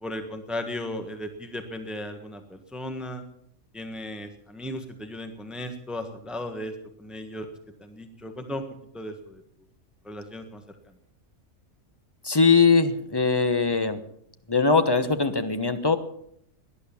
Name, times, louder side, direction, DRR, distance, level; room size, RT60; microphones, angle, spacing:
voice 1, 0.0-3.2 3.7-6.7 7.0-7.5 7.8-8.6 8.9-9.4 10.0-10.6, left 1 dB, ahead, 6 dB, 1.5 m, -36 dB
voice 2, 12.2-14.0 14.5-16.0, left 4 dB, 20° left, 9 dB, 1.0 m, -21 dB
18.0 x 11.0 x 7.1 m, 0.70 s
omnidirectional pair, 1.4 m